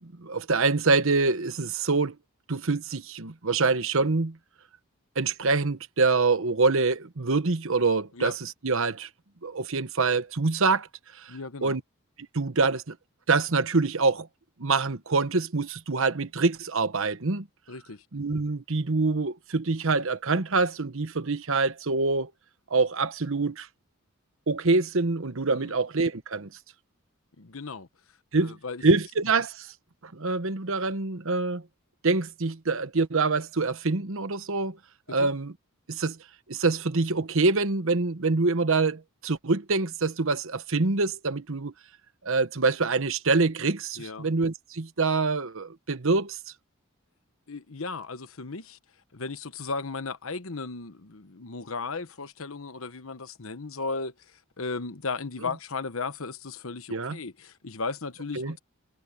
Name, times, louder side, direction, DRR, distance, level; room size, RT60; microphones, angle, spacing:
voice 1, 0.0-2.2 2.5-4.4 5.2-9.1 9.4-10.9 11.2-11.4 11.6-11.8 12.3-13.0 13.3-14.3 14.6-17.5 18.1-22.3 22.7-23.7 24.5-26.5 28.3-28.6 28.8-29.7 30.0-31.6 32.0-34.8 35.1-35.5 35.9-36.2 36.5-41.7 42.2-46.4 56.9-57.2 58.4-58.5, right 3 dB, 65° right, 1.1 m, -25 dB
voice 2, 11.3-11.8 17.7-18.0 25.5-25.8 27.4-27.9 28.4-28.8 35.1-35.3 44.0-44.3 47.5-48.8 49.1-58.6, left 4 dB, 65° left, 1.1 m, -36 dB
head